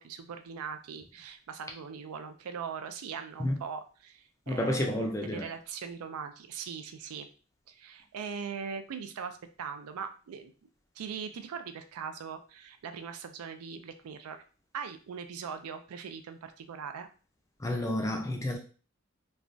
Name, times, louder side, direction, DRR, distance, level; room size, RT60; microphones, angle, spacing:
voice 1, 0.0-7.3 7.7-10.5 11.0-14.4 14.7-17.1, right 6 dB, 85° right, 8 dB, 0.4 m, -40 dB
voice 2, 4.5-5.5 17.6-18.6, left 1 dB, 15° left, 2 dB, 0.4 m, -30 dB
3.1 x 2.3 x 2.5 m, 0.38 s
head